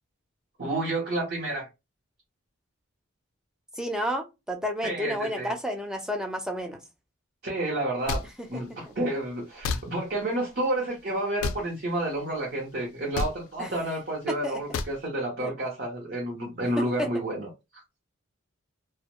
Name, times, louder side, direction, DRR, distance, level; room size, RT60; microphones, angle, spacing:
voice 1, 0.6-1.7 4.8-5.5 7.4-8.2 8.5-17.5 17.7-17.8, right 1 dB, 50° right, 0.6 m, -30 dB
voice 2, 3.7-6.8 8.4-8.9 13.6-13.7 14.3-14.6 15.4-15.5 16.8-17.1, equal, 5° right, 0.3 m, -31 dB
sound 1, 8.1-8.3 9.6-9.8 11.4-11.6 13.1-13.3 14.7-14.9, left 4 dB, 85° left, 0.3 m, -28 dB
2.1 x 2.0 x 2.8 m
head